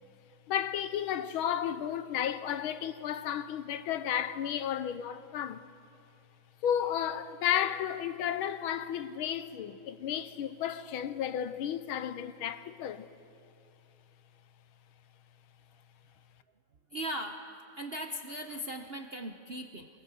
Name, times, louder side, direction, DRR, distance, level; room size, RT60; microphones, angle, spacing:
voice 1, 0.5-5.7 6.6-13.1, left 9 dB, 80° left, 1.7 m, -33 dB
voice 2, 16.9-17.4 17.8-19.9, equal, 50° right, 0.7 m, -38 dB
23.5 x 21.0 x 7.6 m
omnidirectional pair, 2.3 m